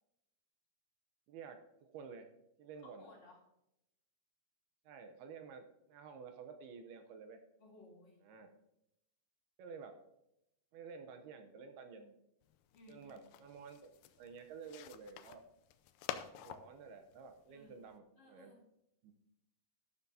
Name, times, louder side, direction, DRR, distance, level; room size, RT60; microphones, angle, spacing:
voice 1, 1.3-2.3 2.6-3.1 4.9-7.4 8.3-8.5 9.6-10.0 10.7-12.1 12.9-15.4 16.4-18.5 19.0-19.1, right 5 dB, 75° right, 6 dB, 2.7 m, -52 dB
voice 2, 2.8-3.4 7.6-8.2 12.7-13.3 17.5-18.6, left 2 dB, 45° left, -4 dB, 3.8 m, -60 dB
sound 1, 12.4-18.0, left 11 dB, 80° left, 2.0 m, -49 dB
12.0 x 12.0 x 2.8 m, 0.84 s
omnidirectional pair, 4.7 m